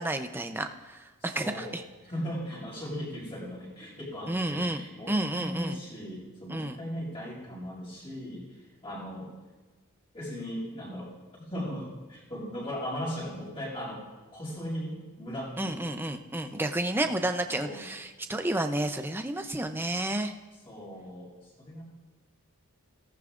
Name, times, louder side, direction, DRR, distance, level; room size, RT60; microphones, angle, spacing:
voice 1, 0.0-1.8 4.3-4.8 5.1-5.8 6.5-6.8 15.6-20.3, right 1 dB, 10° right, 6 dB, 0.7 m, -31 dB
voice 2, 1.2-1.8 2.1-9.3 10.1-11.1 11.4-14.0 14.3-15.9 16.5-16.7 17.0-17.3 17.6-17.8 20.6-21.8, equal, 25° left, -4 dB, 6.8 m, -38 dB
27.5 x 18.0 x 2.6 m, 1.2 s
head